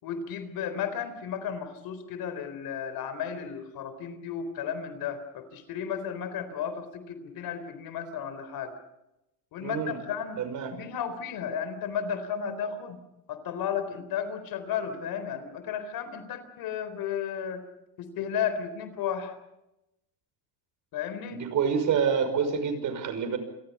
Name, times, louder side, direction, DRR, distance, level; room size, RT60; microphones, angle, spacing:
voice 1, 0.0-8.7 9.5-10.4 10.7-13.0 13.3-17.6 18.0-19.4 20.9-21.4, left 7 dB, 50° left, 11 dB, 4.0 m, -33 dB
voice 2, 9.6-10.0 10.4-10.7 21.3-23.4, right 6 dB, 40° right, 9 dB, 5.9 m, -27 dB
28.5 x 22.5 x 5.5 m, 0.89 s
supercardioid pair, 125°, 44 cm